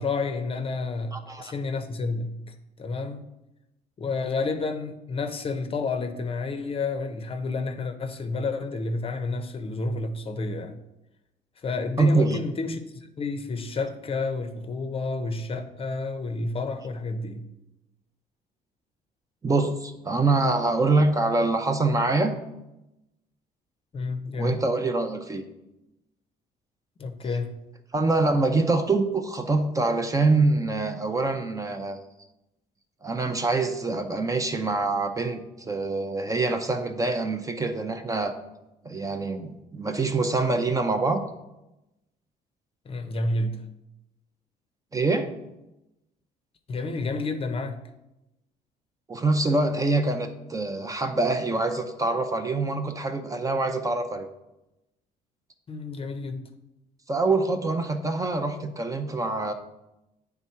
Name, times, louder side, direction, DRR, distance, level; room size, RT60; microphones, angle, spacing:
voice 1, 0.0-3.3 4.0-10.8 11.6-17.5 23.9-24.6 27.0-27.6 42.9-43.6 46.7-47.8 55.7-56.5, left 3 dB, 35° left, 8 dB, 0.6 m, -30 dB
voice 2, 1.1-1.5 12.0-12.4 19.4-22.4 24.3-25.4 27.9-32.0 33.0-38.4 38.8-41.2 44.9-45.3 49.1-54.3 57.1-59.5, right 3 dB, 20° right, 6 dB, 0.6 m, -25 dB
8.8 x 3.6 x 4.3 m, 0.94 s
cardioid pair, 110°, 17 cm